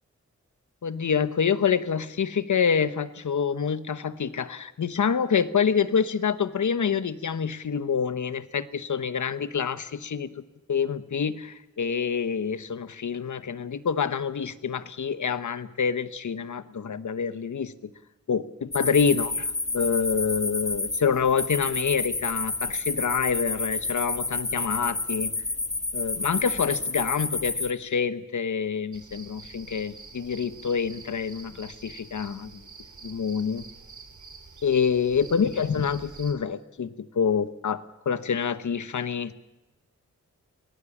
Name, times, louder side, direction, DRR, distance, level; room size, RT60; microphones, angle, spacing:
voice 1, 0.8-10.4 10.7-17.7 18.3-19.5 19.7-25.3 25.9-32.6 33.0-33.6 34.6-39.3, left 6 dB, 75° left, 14 dB, 1.1 m, -27 dB
sound 1, 18.7-27.7, left 3 dB, 25° left, 1.2 m, -30 dB
sound 2, 28.9-36.3, right 4 dB, 75° right, 3.1 m, -47 dB
23.5 x 18.5 x 7.2 m, 1.0 s
wide cardioid pair, 95°, 30 cm